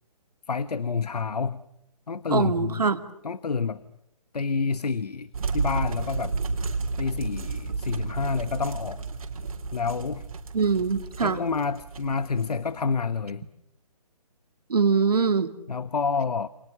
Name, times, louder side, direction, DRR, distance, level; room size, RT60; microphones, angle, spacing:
voice 1, 0.5-1.6 2.1-2.8 3.2-3.8 4.3-5.3 5.5-6.4 7.0-9.0 9.7-10.2 11.2-13.4 15.7-16.5, left 5 dB, 90° left, 15 dB, 1.1 m, -28 dB
voice 2, 2.3-3.0 10.5-11.4 14.7-15.5, right 5 dB, 80° right, 10 dB, 2.3 m, -23 dB
sound 1, 5.3-13.0, right 4 dB, 65° right, 3.7 m, -32 dB
29.0 x 26.5 x 6.7 m, 0.77 s
hypercardioid pair, 155°, 20 cm